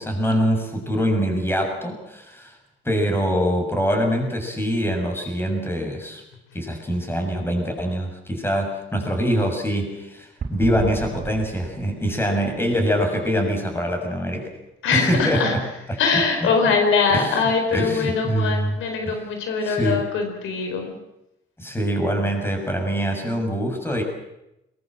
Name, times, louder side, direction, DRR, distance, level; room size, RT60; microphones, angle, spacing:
voice 1, 0.0-2.6 2.8-6.2 6.5-14.5 14.9-15.6 15.9-16.5 17.1-17.4 17.7-18.8 19.1-19.2 19.6-20.0 21.6-24.0, equal, 10° left, 3 dB, 7.1 m, -24 dB
sound 1, 10.4-13.1, right 5 dB, 50° right, 3.9 m, -34 dB
voice 2, 14.8-15.6 16.0-21.0, left 5 dB, 85° left, 5 dB, 4.6 m, -22 dB
22.0 x 21.5 x 7.7 m, 0.88 s
cardioid pair, 90°, 20 cm